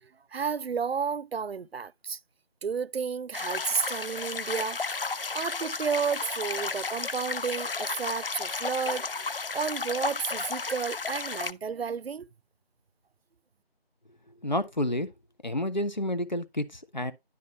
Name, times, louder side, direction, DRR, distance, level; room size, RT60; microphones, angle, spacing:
voice 1, 0.0-2.2 2.6-12.3, right 6 dB, 80° right, 0.5 m, -32 dB
sound 1, 3.3-11.5, left 4 dB, 65° left, 0.6 m, -33 dB
voice 2, 14.4-15.1 15.4-17.1, left 1 dB, 45° left, 1.1 m, -29 dB
11.0 x 3.7 x 4.3 m
figure-of-eight pair, 175°, 31 cm